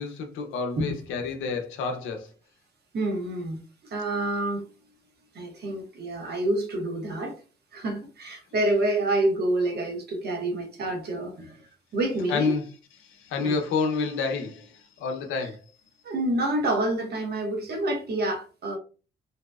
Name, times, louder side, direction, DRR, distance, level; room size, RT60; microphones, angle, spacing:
voice 1, 0.0-2.3 12.3-12.6 13.0-15.6, left 4 dB, 85° left, 0.6 m, -29 dB
voice 2, 2.9-4.6 5.3-7.4 7.7-11.7 11.9-12.6 13.4-13.6 15.4-15.5 16.0-18.8, right 1 dB, 55° right, 0.8 m, -28 dB
2.7 x 2.0 x 2.2 m
cardioid pair, 90°, 20 cm